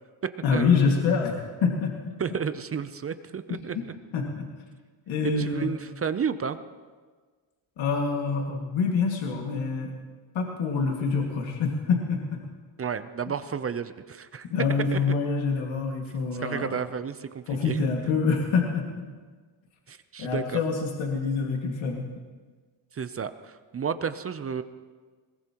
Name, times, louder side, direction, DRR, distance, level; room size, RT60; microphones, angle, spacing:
voice 1, 0.4-2.1 3.5-3.6 4.1-4.5 5.1-5.7 7.8-9.9 10.3-12.4 14.5-16.8 17.5-18.9 20.2-22.1, left 5 dB, 70° left, 0 dB, 2.1 m, -26 dB
voice 2, 2.2-3.8 5.2-6.6 12.8-14.5 14.9-15.0 16.4-17.8 19.9-20.6 22.9-24.6, right 6 dB, 30° right, 12 dB, 0.6 m, -32 dB
22.0 x 18.5 x 3.0 m, 1.5 s
cardioid pair, 110°, 48 cm